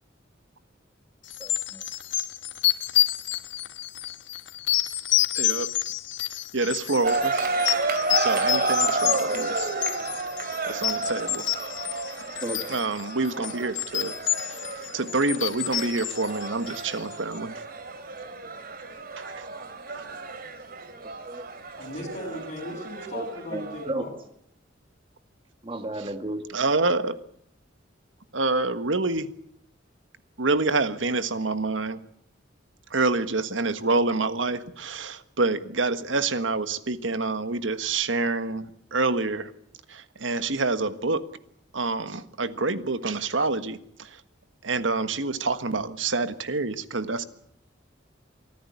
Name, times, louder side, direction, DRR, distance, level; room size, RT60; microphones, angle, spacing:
sound 1, 1.3-17.1, left 14 dB, 70° left, 1.7 m, -29 dB
voice 1, 1.4-1.8 12.4-12.6 21.3-21.4 23.1-23.2 23.5-24.0 25.6-26.4, right 2 dB, 30° right, 8 dB, 1.7 m, -33 dB
voice 2, 5.4-5.7 6.5-7.4 8.1-9.7 10.7-11.7 12.1-12.3 12.7-14.7 14.9-17.6 19.2-20.4 21.8-21.9 25.9-26.1 26.5-27.2 28.3-29.3 30.4-32.0 32.9-39.5 39.9-41.2 41.7-44.2 44.6-47.2, right 3 dB, 85° right, 11 dB, 1.5 m, -27 dB
sound 2, 7.0-23.9, right 3 dB, 50° right, 2.8 m, -31 dB
voice 3, 21.8-24.1, left 1 dB, 40° left, 2 dB, 7.5 m, -37 dB
24.5 x 14.5 x 9.7 m, 0.71 s
head